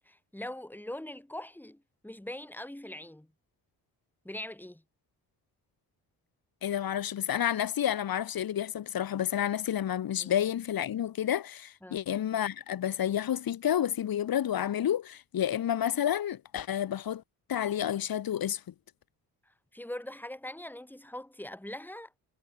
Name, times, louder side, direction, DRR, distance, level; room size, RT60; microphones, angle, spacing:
voice 1, 0.0-3.3 4.2-4.8 10.2-10.3 11.8-12.0 19.7-22.2, left 1 dB, 5° left, 5.0 m, -42 dB
voice 2, 6.6-17.2 17.5-18.6, left 10 dB, 65° left, 4.4 m, -30 dB
cardioid pair, 95°, 38 cm